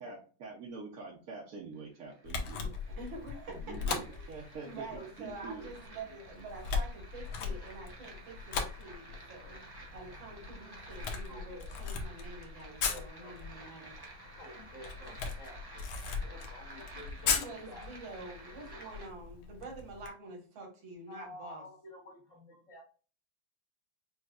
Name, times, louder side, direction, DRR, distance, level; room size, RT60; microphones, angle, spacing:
voice 1, 0.0-2.7 3.5-4.0 4.3-5.7, right 4 dB, 60° right, -1 dB, 1.1 m, -45 dB
sound 1, 1.7-19.1, right 2 dB, 40° right, 0.3 m, -53 dB
Camera, 2.2-20.1, left 5 dB, 85° left, 1.6 m, -39 dB
voice 2, 2.5-3.4 4.2-9.6 9.9-14.0 17.2-21.6, right 2 dB, 75° right, 0 dB, 2.3 m, -47 dB
voice 3, 3.3-4.2 4.6-5.1 6.4-6.5 11.3-11.7 12.6-13.4 14.4-17.9 18.2-19.0 21.1-22.8, left 2 dB, 45° left, -2 dB, 1.4 m, -52 dB
5.5 x 3.1 x 2.4 m, 0.38 s
omnidirectional pair, 2.2 m